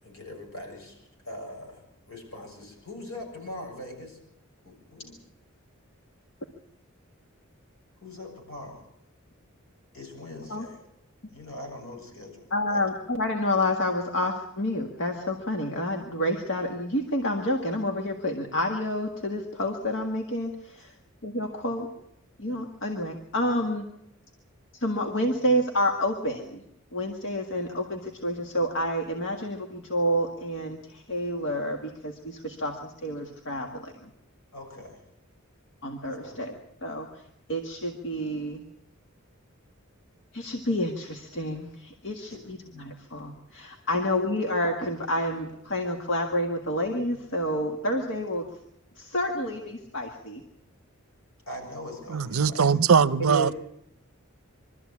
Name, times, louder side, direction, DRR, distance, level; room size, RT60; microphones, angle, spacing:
voice 1, 0.0-4.2 4.6-5.2 8.0-8.8 9.9-10.8 11.3-12.8 20.7-20.9 34.5-35.0 36.1-36.4 42.3-42.4 43.9-44.0 51.5-52.8, left 1 dB, 80° left, 7.0 m, -42 dB
voice 2, 12.5-20.9 21.2-21.9 22.4-23.9 24.8-26.6 26.9-34.1 35.8-36.5 36.8-37.1 37.5-38.6 40.3-48.5 49.0-50.4 53.2-53.5, left 1 dB, 60° left, 1.8 m, -29 dB
voice 3, 52.1-53.5, right 6 dB, 75° right, 0.7 m, -21 dB
23.5 x 13.5 x 8.5 m
head